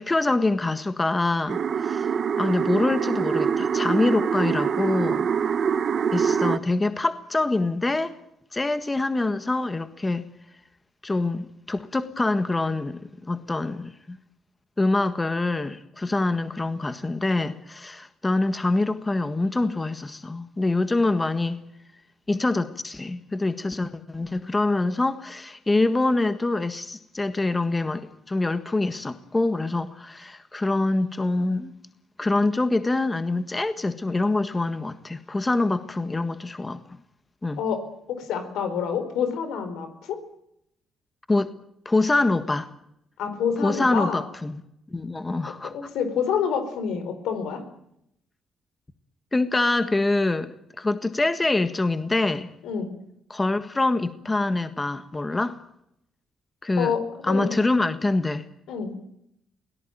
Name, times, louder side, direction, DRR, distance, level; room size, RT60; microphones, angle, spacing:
voice 1, 0.0-2.1 2.4-5.3 6.1-8.1 8.5-10.2 11.0-14.2 14.8-21.6 22.3-31.7 32.2-36.8 37.4-37.6 41.3-41.5 41.8-42.7 43.6-44.6 44.9-45.7 49.3-52.5 53.3-55.6 56.6-56.9 57.2-58.5, left 2 dB, 20° left, 10 dB, 1.6 m, -25 dB
sound 1, 1.5-6.6, right 7 dB, 55° right, 1.1 m, -24 dB
voice 2, 38.1-40.2 43.2-44.2 45.6-47.6 52.6-52.9 56.8-57.6 58.7-59.0, left 7 dB, 85° left, 9 dB, 4.5 m, -27 dB
23.5 x 18.0 x 9.2 m, 0.78 s
cardioid pair, 90°, 0 cm